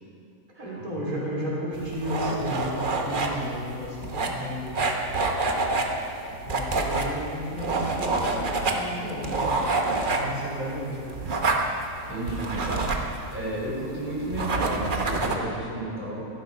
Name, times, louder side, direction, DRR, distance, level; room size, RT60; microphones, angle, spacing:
voice 1, 0.6-5.0 6.3-9.6 10.1-11.0, equal, 85° right, -6 dB, 4.0 m, -33 dB
sound 1, 1.7-15.3, right 3 dB, 40° right, 1.1 m, -28 dB
voice 2, 12.1-12.8 13.3-16.3, right 1 dB, 10° right, -6 dB, 3.8 m, -32 dB
14.5 x 12.0 x 5.3 m, 2.8 s
omnidirectional pair, 1.6 m